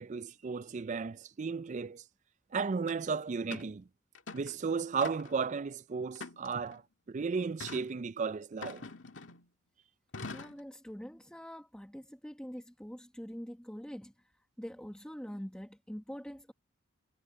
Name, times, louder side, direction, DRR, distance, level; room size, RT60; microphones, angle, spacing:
voice 1, 0.0-2.0 2.5-3.8 4.3-6.8 7.1-8.8, right 5 dB, 35° right, 0.4 m, -34 dB
sound 1, 2.9-3.0 3.5-3.7 4.1-4.6 5.0-5.5 6.1-6.8 7.6-7.9 8.6-9.5 10.1-10.6, left 3 dB, 65° left, 2.3 m, -44 dB
voice 2, 10.3-16.5, equal, 5° left, 1.4 m, -45 dB
head